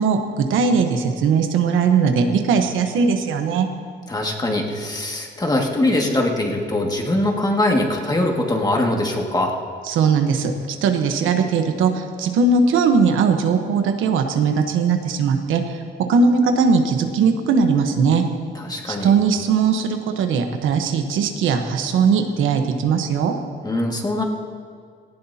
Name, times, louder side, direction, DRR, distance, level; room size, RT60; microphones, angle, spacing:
voice 1, 0.0-3.7 9.9-15.8 16.1-18.2 18.9-23.3, right 5 dB, 85° right, 5 dB, 1.1 m, -19 dB
voice 2, 4.1-9.5 18.5-19.1 23.6-24.2, left 1 dB, 20° left, 0 dB, 2.0 m, -22 dB
17.5 x 15.0 x 2.9 m, 2.1 s
cardioid pair, 90°, 20 cm